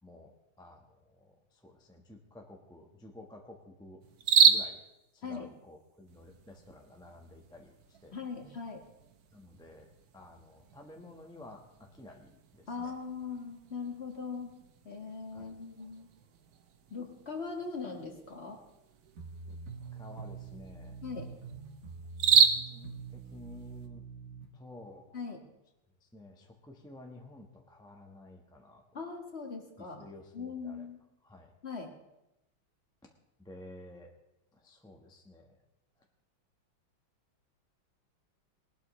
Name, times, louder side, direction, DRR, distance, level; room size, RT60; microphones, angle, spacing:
voice 1, 0.0-4.0 4.4-4.8 5.1-8.2 9.3-9.9 10.1-12.9 15.3-15.5 19.5-19.6 19.9-21.0 22.4-24.0 24.5-25.2 26.0-29.0 29.8-30.9 31.2-31.5 33.4-34.1 34.5-35.6, left 1 dB, 5° left, 1 dB, 1.0 m, -52 dB
sound 1, 4.0-23.9, right 7 dB, 60° right, 1.2 m, -33 dB
voice 2, 8.1-8.8 12.7-14.5 14.8-16.1 16.9-18.6 21.0-21.3 25.1-25.4 28.9-30.0 30.3-31.0 31.6-31.9, left 5 dB, 35° left, 2 dB, 1.7 m, -40 dB
sound 2, 19.1-24.5, right 5 dB, 40° right, 1.5 m, -45 dB
19.5 x 12.0 x 3.3 m, 0.90 s
omnidirectional pair, 2.2 m